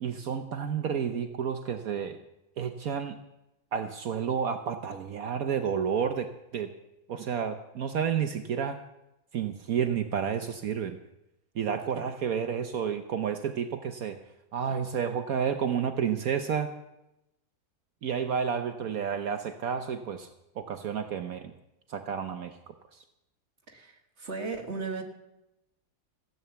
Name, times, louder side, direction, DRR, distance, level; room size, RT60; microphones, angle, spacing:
voice 1, 0.0-2.2 2.6-3.2 3.7-6.3 6.5-6.7 7.1-8.8 9.3-11.0 11.6-14.2 14.5-16.7 18.0-20.3 20.6-21.5 21.9-22.6, right 7 dB, 65° right, 7 dB, 1.2 m, -30 dB
voice 2, 24.2-25.0, right 4 dB, 45° right, 3 dB, 1.9 m, -35 dB
16.0 x 9.4 x 6.9 m, 0.89 s
omnidirectional pair, 1.7 m